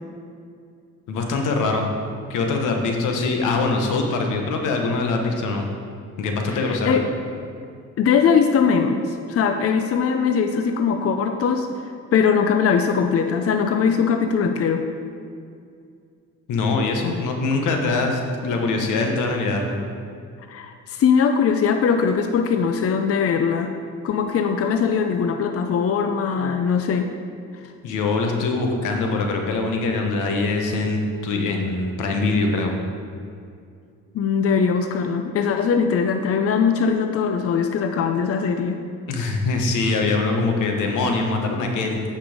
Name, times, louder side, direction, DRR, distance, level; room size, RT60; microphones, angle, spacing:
voice 1, 1.1-1.9 2.3-5.7 6.2-7.0 16.5-19.8 27.8-32.8 39.1-42.0, left 3 dB, 85° left, 3 dB, 1.2 m, -23 dB
voice 2, 6.5-7.0 8.0-11.8 12.1-14.8 20.5-23.7 24.0-27.1 27.6-27.7 34.1-38.8, left 6 dB, 50° left, 6 dB, 0.6 m, -21 dB
8.7 x 5.7 x 5.0 m, 2.3 s
cardioid pair, 90°, 30 cm